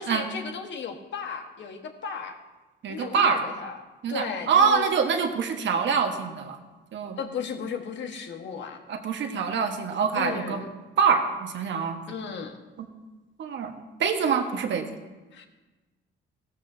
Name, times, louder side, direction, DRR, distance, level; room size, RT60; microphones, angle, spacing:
voice 1, 0.0-2.4 2.9-3.8 4.1-4.9 7.2-8.8 10.1-10.7 12.1-12.6 15.3-15.5, left 6 dB, 65° left, 4 dB, 1.4 m, -35 dB
voice 2, 2.8-3.4 4.0-6.6 6.9-7.2 8.9-10.6 11.0-12.0 12.8-12.9 13.4-13.7 14.0-14.8, right 6 dB, 65° right, 5 dB, 1.4 m, -25 dB
15.5 x 13.5 x 2.8 m, 1.2 s
cardioid pair, 90°, 20 cm